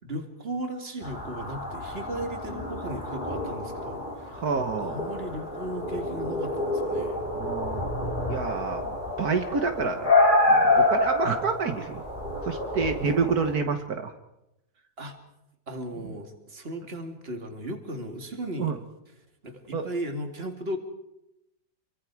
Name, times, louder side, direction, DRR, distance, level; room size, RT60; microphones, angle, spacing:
voice 1, 0.0-4.4 4.8-7.3 15.0-15.2 15.7-18.8 19.4-20.8, right 1 dB, 35° right, 4 dB, 2.6 m, -36 dB
sound 1, 1.0-13.5, left 2 dB, 30° left, 4.2 m, -27 dB
voice 2, 4.3-5.0 7.3-7.9 8.3-10.1 10.5-12.0 12.4-14.1 16.0-16.1 18.6-18.8 19.7-19.8, right 5 dB, 65° right, 7 dB, 1.8 m, -28 dB
28.0 x 24.0 x 4.8 m, 0.87 s
omnidirectional pair, 1.8 m